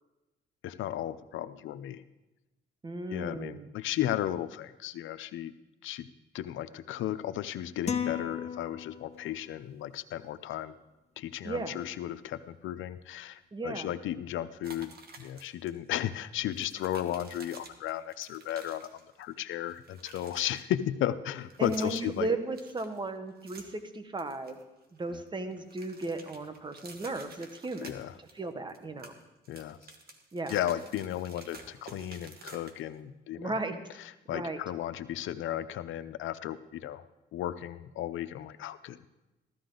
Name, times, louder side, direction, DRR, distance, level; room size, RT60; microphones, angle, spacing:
voice 1, 0.6-2.0 3.1-5.5 5.8-6.1 6.3-10.7 11.2-22.3 25.1-25.2 27.8-28.1 29.5-29.8 30.5-33.5 34.3-37.0 37.3-39.1, left 12 dB, 80° left, 12 dB, 0.7 m, -35 dB
voice 2, 2.8-3.7 11.4-11.8 13.5-13.9 21.6-24.6 24.9-27.9 28.3-29.1 30.3-30.6 33.3-33.8 34.3-34.6, right 2 dB, 25° right, 8 dB, 1.3 m, -35 dB
sound 1, 7.9-9.4, left 8 dB, 35° left, 0.8 m, -34 dB
sound 2, 14.6-15.7 15.9-16.1 16.5-19.3 19.6-20.6 21.4-22.3 22.5-23.9 24.2-25.2 25.5-28.4 28.7-33.0, right 3 dB, 50° right, 1.7 m, -51 dB
15.0 x 13.5 x 3.9 m, 1.0 s
cardioid pair, 90°, 20 cm